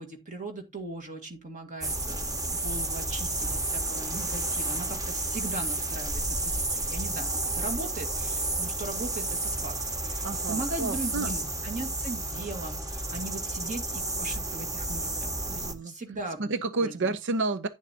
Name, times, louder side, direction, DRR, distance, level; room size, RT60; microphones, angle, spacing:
voice 1, 0.0-9.7 10.0-16.4 16.8-17.0, right 2 dB, 35° right, 1.8 m, -39 dB
sound 1, 1.8-15.7, right 2 dB, 15° right, 1.7 m, -31 dB
voice 2, 10.2-11.3 15.5-15.9 16.4-17.7, right 3 dB, 55° right, 0.7 m, -30 dB
11.0 x 10.5 x 2.9 m
head